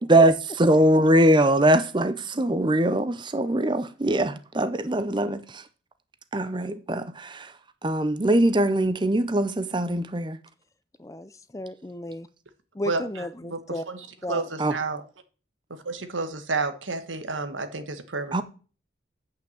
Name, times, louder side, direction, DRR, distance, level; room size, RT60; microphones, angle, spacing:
voice 1, 0.1-5.7 6.3-10.4 14.6-14.8 18.3-18.4, right 1 dB, 25° right, 0.7 m, -22 dB
voice 2, 11.0-12.3 12.7-13.9 14.2-14.5, left 1 dB, 15° left, 0.5 m, -34 dB
voice 3, 14.3-15.0 15.8-18.4, right 3 dB, 85° right, 1.5 m, -30 dB
9.0 x 5.8 x 7.8 m
head